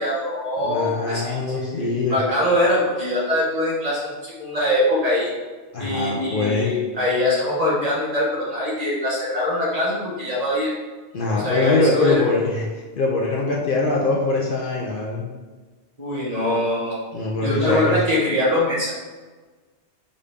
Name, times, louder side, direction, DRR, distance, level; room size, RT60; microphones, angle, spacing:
voice 1, 0.0-5.3 5.8-10.7 11.3-12.2 16.0-17.0 17.4-18.9, left 1 dB, 35° right, -6 dB, 1.2 m, -23 dB
voice 2, 0.6-2.2 5.7-6.7 11.1-12.7 13.0-15.3 17.1-18.0, left 3 dB, 60° left, -2 dB, 0.7 m, -23 dB
5.1 x 2.7 x 3.4 m, 1.3 s
omnidirectional pair, 1.1 m